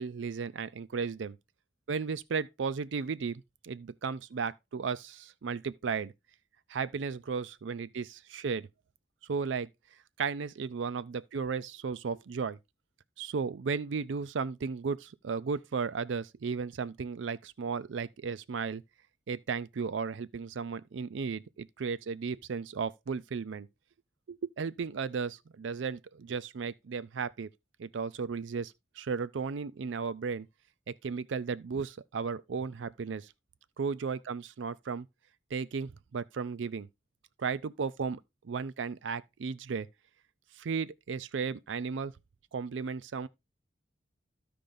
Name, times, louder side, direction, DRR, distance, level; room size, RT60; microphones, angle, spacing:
voice 1, 0.0-1.4 1.9-6.1 6.7-8.7 9.3-9.7 10.2-12.6 13.2-18.8 19.3-23.7 24.3-27.5 27.8-30.5 30.9-33.3 33.8-35.1 35.5-36.9 37.4-38.2 38.4-39.9 40.6-42.1 42.5-43.3, right 5 dB, 80° right, 0.4 m, -35 dB
14.5 x 5.1 x 2.6 m
head